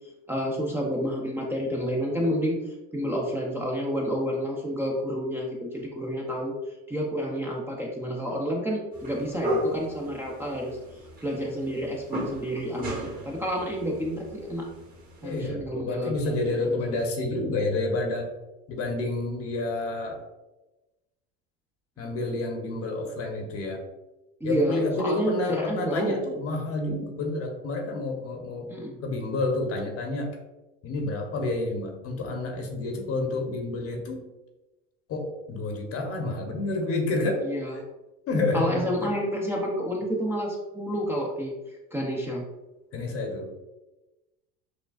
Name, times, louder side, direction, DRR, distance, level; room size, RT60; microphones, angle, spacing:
voice 1, 0.3-6.5 6.9-10.8 11.2-14.6 15.2-16.4 16.6-16.7 24.4-26.2 28.7-29.0 37.4-37.7 38.5-42.4, equal, 5° right, -2 dB, 0.6 m, -29 dB
sound 1, 8.9-15.5, equal, 25° right, 1.3 m, -35 dB
voice 2, 15.2-18.3 18.7-20.2 22.0-23.8 24.4-28.7 29.0-30.3 30.8-34.2 35.1-37.4 38.3-39.1 42.9-43.5, left 2 dB, 45° left, 2 dB, 1.0 m, -29 dB
6.3 x 2.2 x 2.4 m, 1.1 s
supercardioid pair, 100°, 33 cm